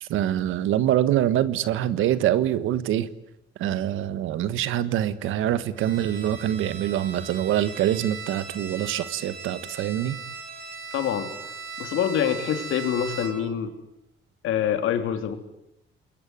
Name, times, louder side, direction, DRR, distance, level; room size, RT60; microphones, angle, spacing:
voice 1, 0.0-3.1 3.6-10.2, right 11 dB, 90° right, 14 dB, 1.5 m, -25 dB
Bowed string instrument, 5.8-13.6, right 5 dB, 70° right, 6.5 m, -39 dB
voice 2, 10.9-11.3 11.8-13.7 14.4-15.4, left 9 dB, 85° left, 7 dB, 3.4 m, -25 dB
28.5 x 21.5 x 9.3 m, 0.84 s
cardioid pair, 90°, 20 cm